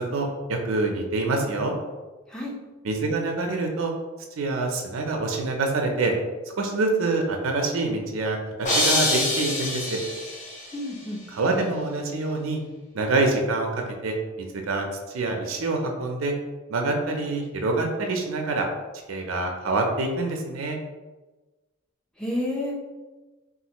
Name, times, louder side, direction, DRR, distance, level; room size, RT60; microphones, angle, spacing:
voice 1, 0.0-1.7 2.8-3.9 4.4-6.1 6.6-10.0 11.3-12.6 12.9-14.2 14.6-14.9 15.1-16.3 16.7-18.7 19.1-20.8, right 3 dB, 80° right, 3 dB, 0.5 m, -26 dB
sound 1, 8.6-10.7, left 1 dB, 35° left, 0.7 m, -25 dB
voice 2, 10.7-11.2 22.2-22.7, left 1 dB, 5° left, -4 dB, 0.5 m, -29 dB
3.2 x 2.4 x 2.8 m, 1.2 s
head